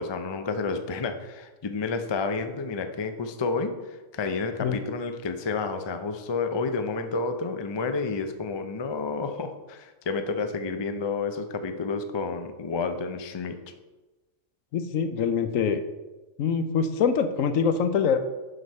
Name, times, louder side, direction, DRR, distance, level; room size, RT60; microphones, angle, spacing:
voice 1, 0.0-13.6, left 4 dB, 35° left, 7 dB, 0.4 m, -30 dB
voice 2, 14.7-15.8 16.4-18.2, left 6 dB, 80° left, 9 dB, 1.1 m, -24 dB
7.8 x 6.1 x 5.4 m, 1.2 s
omnidirectional pair, 1.4 m